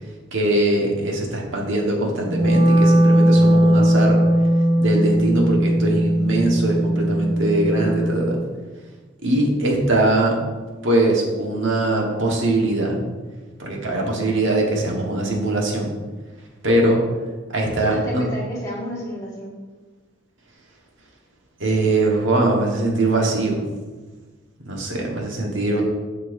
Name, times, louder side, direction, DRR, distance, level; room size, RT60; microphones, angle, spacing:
voice 1, 0.3-4.2 4.8-8.4 9.2-10.4 10.8-13.0 13.6-15.9 16.6-17.0 17.5-18.2 21.6-23.6 24.6-25.8, right 2 dB, 80° right, -1 dB, 1.4 m, -21 dB
Wind instrument woodwind instrument, 2.2-8.4, right 1 dB, 35° right, 1.1 m, -18 dB
voice 2, 17.7-19.5, equal, 15° left, -5 dB, 1.7 m, -31 dB
8.3 x 5.7 x 2.7 m, 1.3 s
head